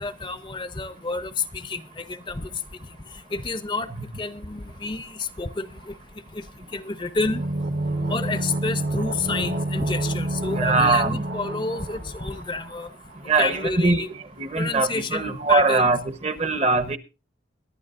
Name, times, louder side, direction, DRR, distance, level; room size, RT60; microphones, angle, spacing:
voice 1, 0.0-2.5 3.3-3.9 4.2-6.0 6.3-6.4 6.7-7.4 8.1-12.9 13.4-14.1 14.5-15.9, left 3 dB, 25° left, 0.6 m, -29 dB
sound 1, 7.2-12.9 13.1-13.2, right 1 dB, 65° right, 1.3 m, -28 dB
voice 2, 10.5-11.2 13.3-14.1 14.4-17.0, right 3 dB, 35° right, 0.9 m, -22 dB
22.0 x 11.5 x 2.5 m
head